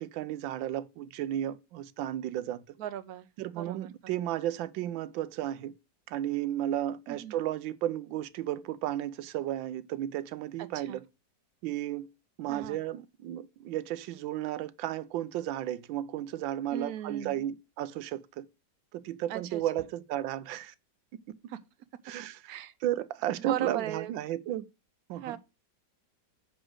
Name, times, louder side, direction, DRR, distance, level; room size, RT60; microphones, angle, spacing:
voice 1, 0.0-2.6 3.4-5.7 6.1-11.0 11.6-12.1 12.4-18.5 18.9-20.7 22.0-22.6 22.8-24.6 25.1-25.4, right 12 dB, 90° right, 1.4 m, -33 dB
voice 2, 2.8-3.3 3.6-3.9 7.1-7.4 10.7-11.0 12.5-12.8 16.7-17.4 19.3-19.6 21.5-21.6 22.5-22.7 23.5-24.1 25.2-25.4, right 12 dB, 65° right, 0.9 m, -37 dB
6.2 x 5.0 x 6.2 m
omnidirectional pair, 2.0 m